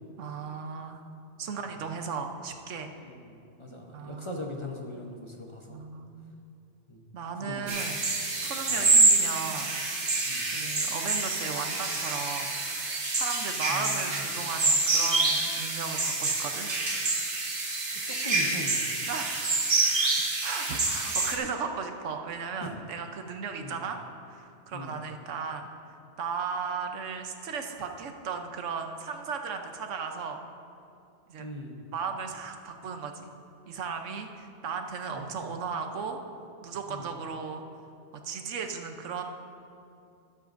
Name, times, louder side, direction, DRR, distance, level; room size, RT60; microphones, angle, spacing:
voice 1, 0.2-1.0 1.4-2.9 3.9-4.3 5.7-6.4 7.1-8.1 8.4-9.7 10.5-12.5 13.1-16.7 19.1-19.8 20.4-24.0 24.3-25.7 26.2-30.4 31.3-31.5 31.9-33.3 33.7-36.2 36.6-37.6 38.2-39.2, right 5 dB, 90° right, 5 dB, 1.1 m, -36 dB
voice 2, 3.0-5.8 6.9-7.0 7.4-7.8 8.7-8.8 10.3-10.4 13.7-14.2 18.0-18.9 22.6-22.8 23.6-23.8 24.7-25.0 31.4-31.8 35.1-35.3 36.9-37.1, left 1 dB, 30° left, 1 dB, 0.7 m, -40 dB
sound 1, 7.7-21.4, right 3 dB, 45° right, 1.3 m, -27 dB
13.0 x 12.0 x 2.6 m, 2.6 s
omnidirectional pair, 1.2 m